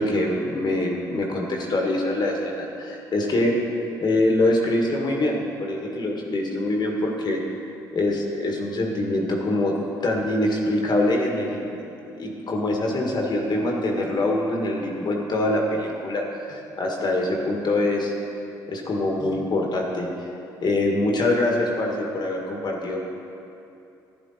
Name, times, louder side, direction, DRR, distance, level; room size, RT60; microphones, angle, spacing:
voice 1, 0.0-3.6 4.0-7.4 7.9-9.8 10.0-11.6 12.1-18.1 18.7-20.3 20.6-23.0, left 1 dB, 50° left, 0 dB, 1.7 m, -24 dB
11.5 x 10.0 x 4.2 m, 2.7 s
hypercardioid pair, 60°, 9 cm